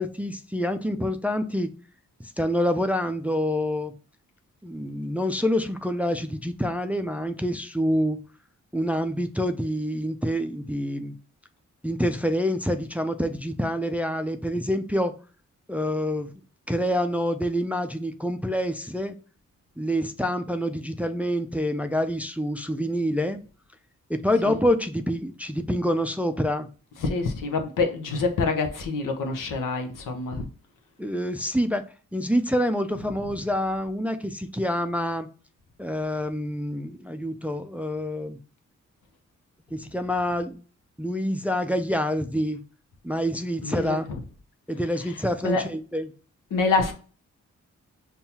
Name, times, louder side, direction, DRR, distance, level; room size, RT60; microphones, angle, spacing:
voice 1, 0.0-1.7 2.2-3.9 4.6-8.2 8.7-11.1 11.8-15.1 15.7-16.4 16.7-19.2 19.8-23.4 24.1-26.7 31.0-31.8 32.1-35.3 35.8-38.4 39.7-40.6 41.0-42.6 43.0-44.1 44.7-46.1, equal, 5° right, 0.4 m, -27 dB
voice 2, 27.0-30.5 43.6-44.0 45.4-45.6 46.5-46.9, left 4 dB, 85° left, 0.8 m, -26 dB
5.4 x 2.3 x 2.8 m
cardioid pair, 55°, 31 cm